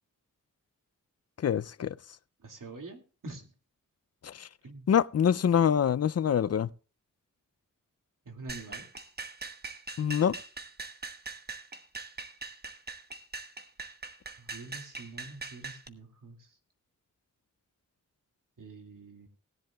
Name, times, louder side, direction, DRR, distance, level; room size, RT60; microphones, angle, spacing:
voice 1, 1.4-2.0 4.2-4.5 4.9-6.7 10.0-10.4, left 8 dB, 50° left, 0.5 m, -25 dB
voice 2, 2.4-3.5 4.6-4.9 8.3-8.9 14.4-16.6 18.6-19.3, right 3 dB, 75° right, 2.3 m, -46 dB
sound 1, 8.5-15.9, right 3 dB, 30° right, 1.2 m, -42 dB
18.5 x 10.5 x 2.3 m
cardioid pair, 50°, 32 cm